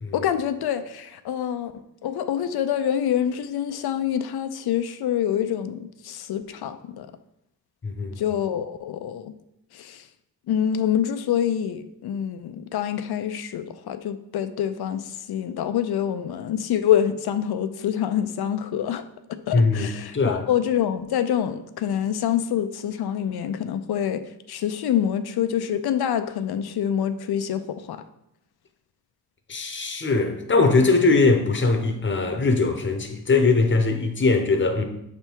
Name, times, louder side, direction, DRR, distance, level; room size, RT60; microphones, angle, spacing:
voice 1, 0.1-1.7 2.0-7.1 8.2-9.3 9.7-10.1 10.5-19.0 19.3-28.0, left 9 dB, 90° left, 0.5 m, -26 dB
voice 2, 7.8-8.2 19.5-20.4 29.5-34.8, left 3 dB, 30° left, 0.8 m, -21 dB
6.7 x 3.5 x 4.5 m
wide cardioid pair, 115°, 37 cm